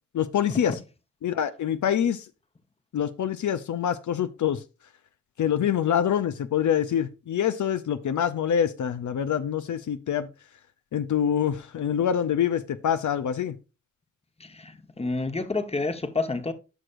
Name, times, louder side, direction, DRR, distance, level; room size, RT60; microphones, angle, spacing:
voice 1, 0.1-0.8 1.2-2.3 2.9-4.6 5.4-10.3 10.9-13.6, left 9 dB, 75° left, 0.6 m, -25 dB
voice 2, 14.4-16.5, left 3 dB, 20° left, 1.0 m, -29 dB
11.0 x 6.2 x 2.5 m
cardioid pair, 70°, 30 cm